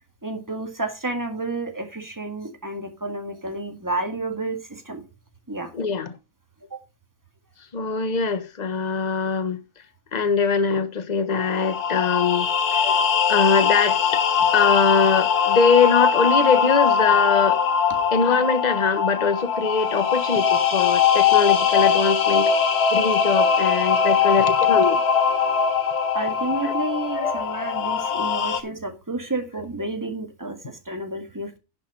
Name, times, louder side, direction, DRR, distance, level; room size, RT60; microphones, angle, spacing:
voice 1, 0.2-5.0 5.5-5.7 6.7-6.8 26.1-31.6, right 2 dB, 10° right, 1.8 m, -30 dB
voice 2, 5.7-6.2 7.7-9.6 10.1-14.2 14.5-17.6 18.1-22.5 22.9-25.0 26.6-26.7 27.2-27.4, left 5 dB, 30° left, 1.1 m, -22 dB
sound 1, 11.3-28.6, left 7 dB, 70° left, 1.5 m, -21 dB
11.0 x 5.3 x 5.6 m
omnidirectional pair, 1.7 m